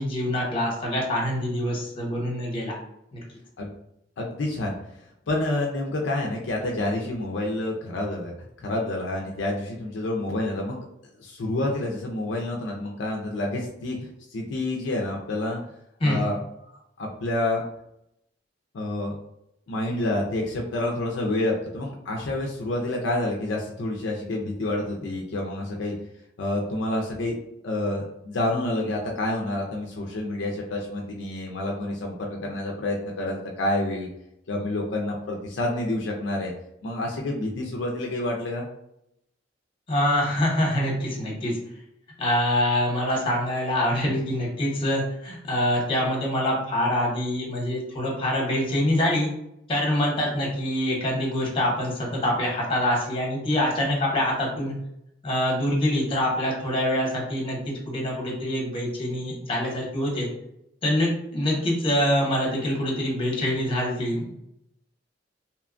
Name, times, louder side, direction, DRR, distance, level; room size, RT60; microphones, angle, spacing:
voice 1, 0.0-2.7 3.1-3.2 16.0-16.3 39.9-41.6 42.2-49.3 49.7-54.7 55.2-60.3 60.8-64.4, left 1 dB, 30° left, -2 dB, 0.9 m, -25 dB
voice 2, 4.2-4.7 5.3-10.8 11.2-14.0 14.3-15.6 16.0-17.6 18.7-19.2 19.7-26.0 26.4-27.3 27.6-34.1 34.5-36.5 36.8-38.7, left 1 dB, 70° left, 0 dB, 0.4 m, -28 dB
2.8 x 2.2 x 2.4 m, 0.79 s
head